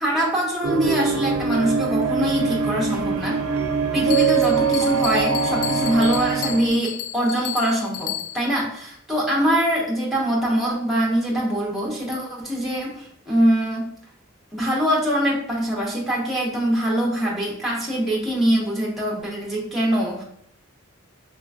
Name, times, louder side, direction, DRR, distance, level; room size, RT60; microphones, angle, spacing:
voice 1, 0.0-3.4 3.9-13.9 14.5-20.2, equal, ahead, -4 dB, 0.7 m, -23 dB
sound 1, 0.6-6.7, right 5 dB, 90° right, 0.5 m, -23 dB
Bell, 4.1-8.6, left 12 dB, 75° left, 0.3 m, -33 dB
3.8 x 3.1 x 2.5 m, 0.67 s
head